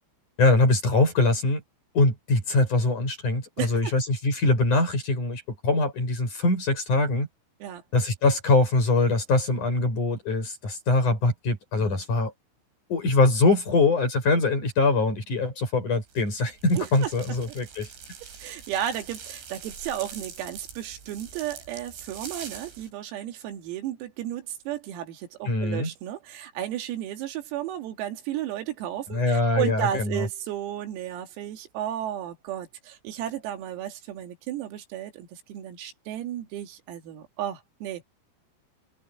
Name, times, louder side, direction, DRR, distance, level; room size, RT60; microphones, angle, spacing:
voice 1, 0.4-1.6 1.9-7.3 7.9-12.3 12.9-17.9 25.4-25.9 29.1-30.3, left 3 dB, 35° left, 8.4 m, -23 dB
voice 2, 3.6-4.0 7.6-7.8 11.7-12.0 16.8-17.1 17.5-17.6 18.4-38.0, right 11 dB, 85° right, 5.0 m, -33 dB
sound 1, 16.1-22.9, right 6 dB, 60° right, 7.8 m, -43 dB
omnidirectional pair, 6.0 m